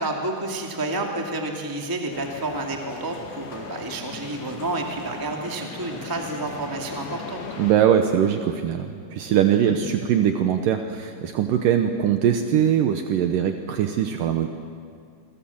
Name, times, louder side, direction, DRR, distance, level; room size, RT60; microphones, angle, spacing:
voice 1, 0.0-7.4 9.6-9.8, right 2 dB, 10° right, 1 dB, 1.1 m, -30 dB
sound 1, 2.1-7.7, left 5 dB, 75° left, 4.7 m, -39 dB
voice 2, 7.6-14.5, right 9 dB, 80° right, 6 dB, 2.0 m, -21 dB
28.0 x 23.0 x 7.3 m, 2.3 s
omnidirectional pair, 5.2 m